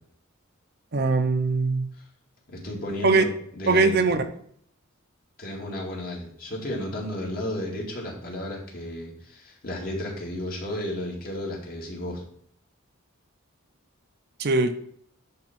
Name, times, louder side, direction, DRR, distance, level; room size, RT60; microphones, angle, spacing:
voice 1, 0.9-1.9 3.0-3.2 3.7-4.2 14.4-14.7, right 3 dB, 50° right, 7 dB, 0.7 m, -21 dB
voice 2, 2.5-4.0 5.4-12.2, left 1 dB, 45° left, -2 dB, 2.4 m, -33 dB
10.5 x 3.6 x 6.0 m, 0.65 s
head